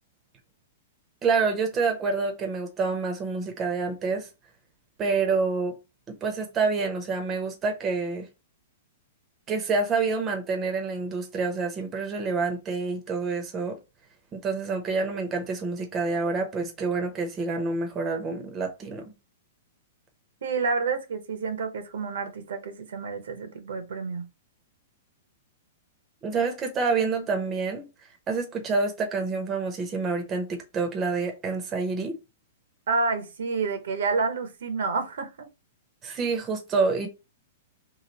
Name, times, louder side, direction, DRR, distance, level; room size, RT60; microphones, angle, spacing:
voice 1, 1.2-4.3 5.0-5.8 6.1-8.3 9.5-13.8 14.3-19.1 26.2-27.9 28.3-32.2 36.0-37.1, right 4 dB, 20° right, 0.7 m, -27 dB
voice 2, 20.4-24.2 32.9-35.5, right 4 dB, 80° right, 0.9 m, -29 dB
3.0 x 2.5 x 3.9 m
hypercardioid pair, 155°, 0 cm